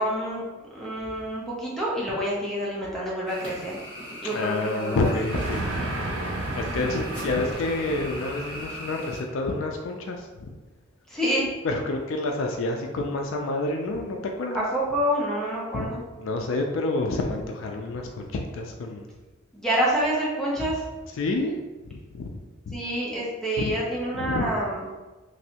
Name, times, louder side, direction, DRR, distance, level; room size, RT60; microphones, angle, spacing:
voice 1, 0.0-3.7 4.2-5.1 6.7-6.8 11.1-11.5 14.7-16.0 19.5-20.8 22.7-24.8, equal, ahead, -6 dB, 0.6 m, -27 dB
sound 1, 3.3-9.2, equal, 25° left, 1.1 m, -41 dB
voice 2, 4.2-5.7 6.6-10.5 11.6-14.6 15.7-15.9 16.2-19.1 21.1-21.5 21.9-22.3 22.7-22.8 23.6-23.8 24.1-24.5, left 2 dB, 70° left, 3 dB, 0.3 m, -28 dB
Train, 5.3-9.2, right 1 dB, 70° right, 0.6 m, -32 dB
3.1 x 2.6 x 2.8 m, 1.2 s
head